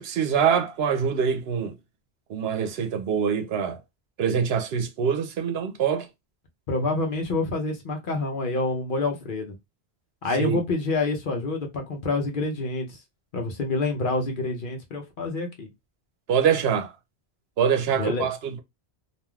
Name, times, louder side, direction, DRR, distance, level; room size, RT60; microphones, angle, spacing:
voice 1, 0.0-1.7 2.3-3.8 4.2-6.1 10.4-10.6 16.3-16.9 17.6-18.6, right 7 dB, 70° right, 0.8 m, -24 dB
voice 2, 6.7-9.5 10.2-13.0 13.3-15.7 17.9-18.3, left 3 dB, 55° left, 0.8 m, -27 dB
3.3 x 2.4 x 2.3 m
omnidirectional pair, 1.1 m